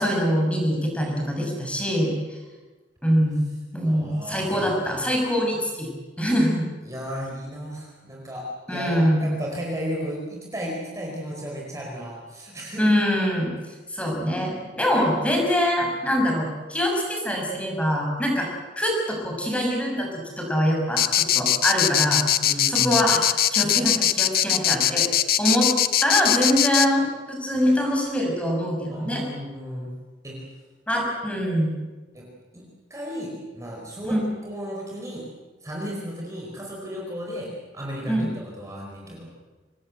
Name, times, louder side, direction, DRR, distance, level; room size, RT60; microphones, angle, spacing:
voice 1, 0.0-2.4 3.0-3.4 3.7-5.9 6.2-6.6 8.7-9.2 12.8-13.5 13.9-18.5 18.8-22.2 22.7-25.1 25.4-25.7 26.0-29.2 30.9-31.7 34.0-34.2 38.1-38.3, equal, 5° left, 0 dB, 6.5 m, -24 dB
voice 2, 3.8-4.5 6.8-12.9 22.4-23.0 28.9-29.9 30.2-30.4 32.1-32.3 32.5-32.6 32.9-35.2 35.6-39.3, equal, 20° right, -2 dB, 4.7 m, -34 dB
sound 1, 21.0-26.9, left 11 dB, 55° left, 1.0 m, -21 dB
26.0 x 19.5 x 7.9 m, 1.3 s
head